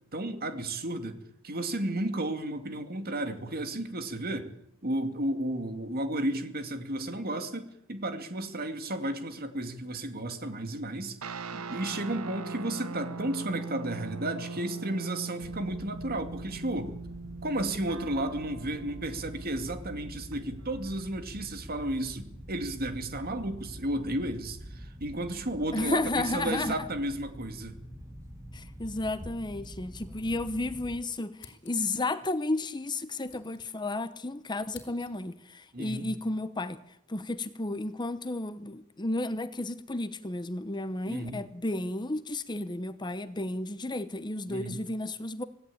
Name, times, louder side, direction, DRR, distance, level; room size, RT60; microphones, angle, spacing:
voice 1, 0.1-1.2 1.4-4.5 4.8-16.9 17.4-27.8 35.7-36.1 41.1-41.4 44.5-44.8, right 1 dB, 45° right, 8 dB, 2.5 m, -33 dB
sound 1, 11.2-20.9, right 4 dB, 80° right, 1.1 m, -41 dB
sound 2, 15.4-31.0, equal, 15° right, 1.6 m, -46 dB
voice 2, 25.7-26.9 28.5-45.4, left 2 dB, 20° left, 12 dB, 0.9 m, -33 dB
sound 3, 29.6-30.6 30.9-31.0 31.3-32.0 32.9-34.2 34.4-35.4, left 7 dB, 55° left, 3.8 m, -55 dB
25.0 x 17.0 x 8.7 m, 0.80 s
head